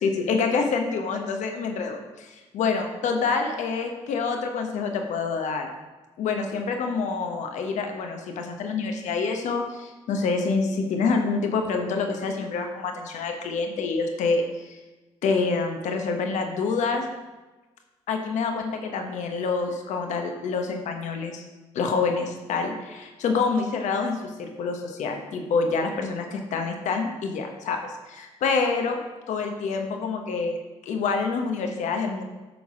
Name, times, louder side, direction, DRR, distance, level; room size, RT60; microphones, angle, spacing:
voice 1, 0.0-5.7 6.2-14.8 15.2-17.0 18.1-21.4 21.7-29.0 29.3-30.6 30.8-32.2, left 4 dB, 75° left, 4 dB, 1.1 m, -27 dB
8.6 x 3.8 x 6.1 m, 1.2 s
supercardioid pair, 60°, 12 cm